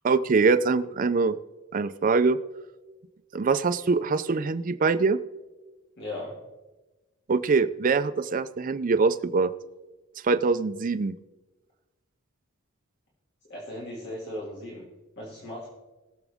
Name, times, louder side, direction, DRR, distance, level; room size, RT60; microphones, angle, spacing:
voice 1, 0.0-1.4 1.7-2.4 3.3-5.2 7.3-9.5 10.2-11.1, right 4 dB, 40° right, 13 dB, 0.4 m, -23 dB
voice 2, 6.0-6.4 13.5-14.9 15.2-15.7, left 1 dB, 55° left, -5 dB, 2.3 m, -37 dB
21.0 x 7.2 x 3.5 m, 1.1 s
head